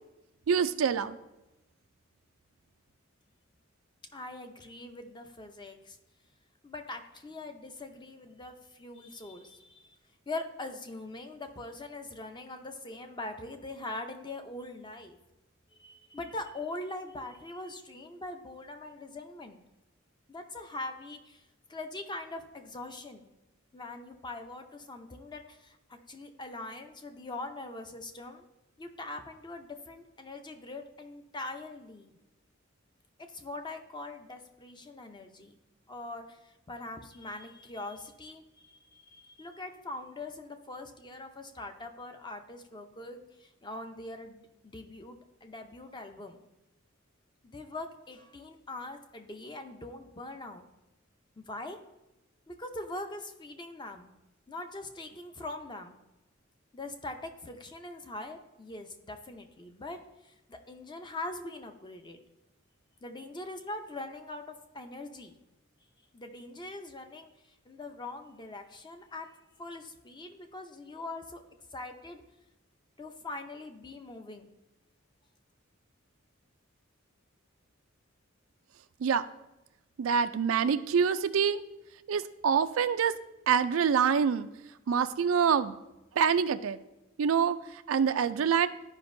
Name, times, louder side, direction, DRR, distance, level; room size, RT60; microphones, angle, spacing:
voice 1, 0.5-1.2 79.0-79.3 80.0-81.6 82.1-83.2 83.5-84.5 84.9-85.8 86.2-86.8 87.2-87.6 87.9-88.7, right 7 dB, 85° right, 12 dB, 0.4 m, -26 dB
voice 2, 4.1-6.0 6.6-10.0 10.3-15.2 15.8-19.6 20.3-21.4 21.7-23.3 23.7-28.5 28.8-32.2 33.2-35.6 35.9-46.4 47.4-50.7 51.4-51.8 52.5-54.1 54.5-56.0 56.7-62.2 63.0-65.4 66.1-67.3 67.7-71.4 71.7-72.2 73.0-74.5, left 2 dB, 20° left, 6 dB, 0.6 m, -42 dB
12.5 x 5.1 x 2.6 m, 0.98 s
head